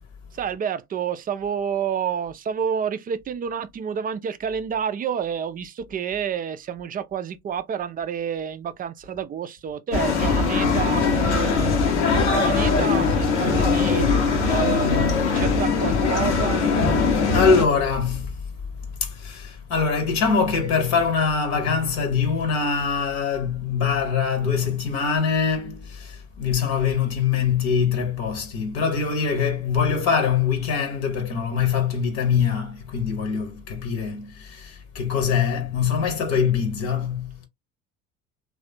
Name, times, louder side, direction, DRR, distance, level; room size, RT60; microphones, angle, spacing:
voice 1, 0.3-14.1 14.5-16.7, right 8 dB, 25° right, 0.4 m, -29 dB
sound 1, 9.9-17.7, left 4 dB, 80° left, 0.9 m, -21 dB
voice 2, 17.1-18.3 19.0-37.4, left 6 dB, 55° left, 0.9 m, -23 dB
3.2 x 2.4 x 2.6 m
figure-of-eight pair, 60°, 34 cm